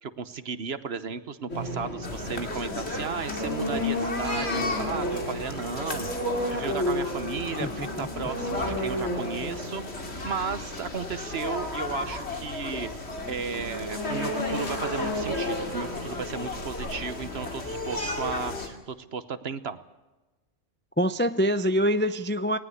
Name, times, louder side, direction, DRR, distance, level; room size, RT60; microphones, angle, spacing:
voice 1, 0.0-6.1 6.5-12.9 13.3-19.8, right 6 dB, 60° right, 13 dB, 1.2 m, -35 dB
sound 1, 1.5-17.9, left 1 dB, 85° left, 4.7 m, -34 dB
sound 2, 2.0-18.7, left 2 dB, 60° left, 2.9 m, -35 dB
voice 2, 7.6-8.1 21.0-22.6, equal, 15° left, 12 dB, 0.4 m, -25 dB
19.5 x 18.5 x 8.0 m, 1.1 s
omnidirectional pair, 1.3 m